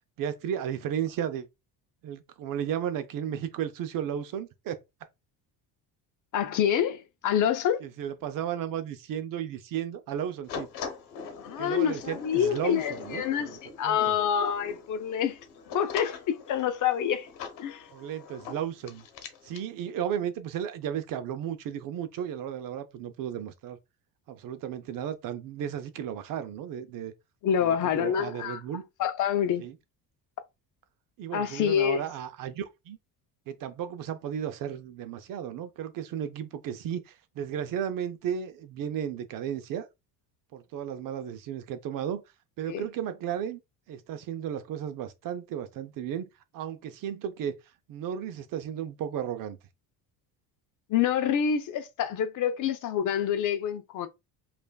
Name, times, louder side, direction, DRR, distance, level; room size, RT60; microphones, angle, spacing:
voice 1, 0.2-1.5 2.0-4.8 7.8-10.7 11.6-13.6 13.8-14.1 17.9-19.1 19.4-23.8 24.3-27.1 27.6-28.8 29.6-29.8 31.2-33.0 33.5-39.9 40.5-42.2 42.6-43.6 43.9-47.6 47.9-49.6, right 9 dB, 55° right, 0.6 m, -34 dB
voice 2, 6.3-7.8 11.4-15.4 15.7-17.3 17.6-17.8 27.4-28.6 29.0-29.7 31.3-32.0 42.7-42.8 50.9-54.1, left 9 dB, 50° left, 0.6 m, -27 dB
sound 1, 10.5-19.7, left 6 dB, 70° left, 1.0 m, -42 dB
5.2 x 2.5 x 2.2 m
cardioid pair, 135°, 40 cm